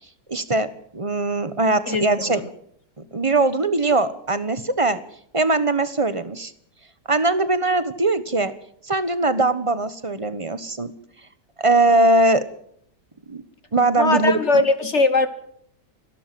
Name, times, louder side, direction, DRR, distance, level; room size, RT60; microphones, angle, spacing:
voice 1, 0.3-0.7 0.9-2.4 3.1-5.0 5.3-6.5 7.1-8.5 8.8-10.9 11.6-12.4 13.3-13.4 13.7-14.6, right 2 dB, 20° right, 13 dB, 1.1 m, -21 dB
voice 2, 1.9-2.4 14.0-15.3, left 3 dB, 45° left, 11 dB, 1.4 m, -20 dB
29.0 x 12.0 x 7.6 m, 0.67 s
omnidirectional pair, 1.8 m